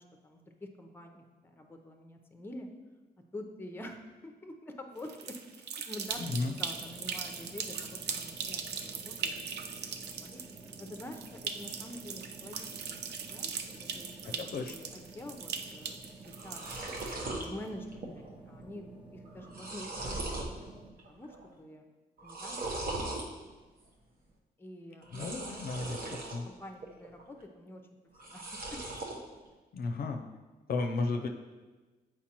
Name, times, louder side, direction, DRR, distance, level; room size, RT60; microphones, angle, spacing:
voice 1, 0.0-2.7 3.3-9.8 10.2-10.4 10.8-14.4 14.7-16.9 17.3-20.3 21.1-21.9 22.2-22.6 22.8-23.5 24.6-26.1 26.4-27.8 28.2-29.0, left 1 dB, 10° left, 4 dB, 0.6 m, -47 dB
sound 1, 5.0-17.4, right 6 dB, 85° right, 0.4 m, -40 dB
sound 2, 6.1-20.9, right 3 dB, 30° right, 0.7 m, -52 dB
voice 2, 6.2-6.6 14.2-14.8 25.1-26.5 29.7-30.3 30.7-31.3, left 3 dB, 65° left, 4 dB, 0.5 m, -34 dB
sound 3, 16.3-17.5 17.9-18.3 18.6-18.7 19.3-20.5 21.0-21.5 22.2-23.3 25.0-26.4 26.8-27.4 28.1-29.2, right 2 dB, 60° right, 0.9 m, -39 dB
7.2 x 4.6 x 2.9 m, 1.2 s
cardioid pair, 100°, 17 cm